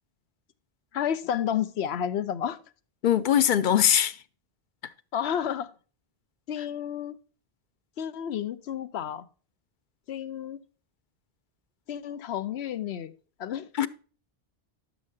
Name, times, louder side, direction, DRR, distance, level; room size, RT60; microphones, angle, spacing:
voice 1, 0.9-2.6 5.1-5.7 6.5-7.2 8.0-9.3 10.1-10.6 11.9-13.1 13.4-13.7, left 9 dB, 85° left, 0.9 m, -31 dB
voice 2, 3.0-4.2 13.8-13.9, left 10 dB, 60° left, 0.6 m, -21 dB
12.0 x 6.5 x 2.6 m
omnidirectional pair, 1.0 m